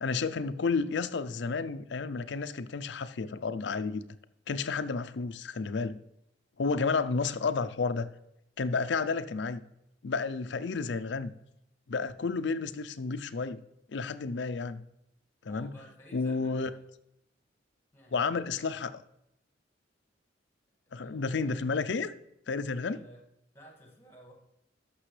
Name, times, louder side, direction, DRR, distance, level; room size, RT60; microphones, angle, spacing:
voice 1, 0.0-4.0 4.5-6.0 6.6-8.1 8.6-9.6 10.0-11.3 11.9-13.6 13.9-14.8 15.4-15.7 16.1-16.7 18.1-18.9 20.9-22.1 22.5-23.0, left 4 dB, 65° left, 12 dB, 0.5 m, -31 dB
voice 2, 15.4-16.8 17.9-18.3 18.6-18.8 20.9-21.9 22.8-23.2 23.5-24.3, equal, 15° left, 0 dB, 1.9 m, -55 dB
13.5 x 6.1 x 3.3 m, 0.79 s
head